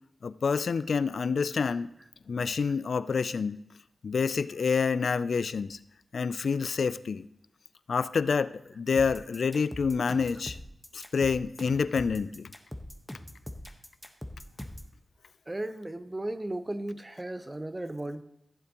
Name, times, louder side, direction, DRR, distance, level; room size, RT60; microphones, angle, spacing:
voice 1, 0.2-1.9 2.3-3.6 4.0-5.8 6.1-7.2 7.9-10.6 10.9-12.5, left 5 dB, 75° left, 16 dB, 0.3 m, -28 dB
sound 1, 9.0-14.9, left 1 dB, 10° left, 1.2 m, -42 dB
voice 2, 15.5-18.2, right 1 dB, 25° right, 12 dB, 0.7 m, -35 dB
15.5 x 7.4 x 3.0 m, 0.79 s
cardioid pair, 40°, 0 cm